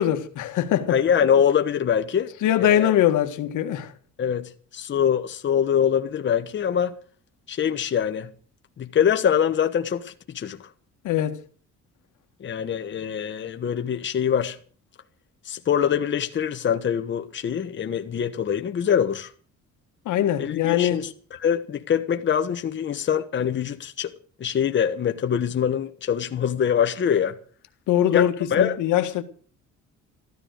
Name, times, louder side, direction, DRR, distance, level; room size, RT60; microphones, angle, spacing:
voice 1, 0.0-0.9 2.4-3.9 11.0-11.4 20.1-21.0 27.9-29.2, left 11 dB, 85° left, 1.7 m, -22 dB
voice 2, 0.9-2.3 2.6-2.9 4.2-6.9 7.5-8.3 8.8-10.6 12.4-14.6 15.4-19.3 20.4-24.1 24.4-27.4 28.1-28.8, left 8 dB, 40° left, 1.2 m, -24 dB
14.0 x 13.0 x 6.5 m
cardioid pair, 140°, 30 cm